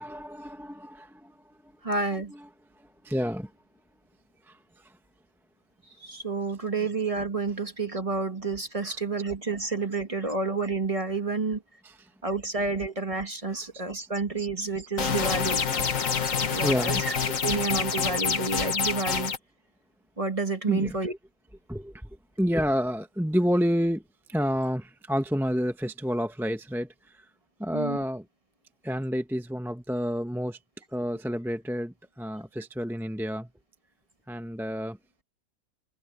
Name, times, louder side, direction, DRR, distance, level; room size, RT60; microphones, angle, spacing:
voice 1, 0.0-1.3 2.3-2.5 3.0-3.5 4.5-4.6 6.8-6.9 8.8-9.0 10.2-10.3 11.8-12.1 13.5-13.7 14.0-14.1 14.4-14.5 16.6-17.0 20.7-21.0 21.7-22.1 22.4-24.0 24.3-27.2 27.6-28.3 28.8-30.6 30.9-33.5 34.3-35.0, equal, ahead, 0.8 m, -29 dB
voice 2, 1.8-2.3 6.0-11.6 12.2-15.6 16.2-17.1 17.4-19.3 20.2-21.1 27.7-28.0, right 3 dB, 20° right, 1.9 m, -30 dB
sound 1, 15.0-19.4, left 6 dB, 60° left, 1.8 m, -27 dB
omnidirectional pair, 1.6 m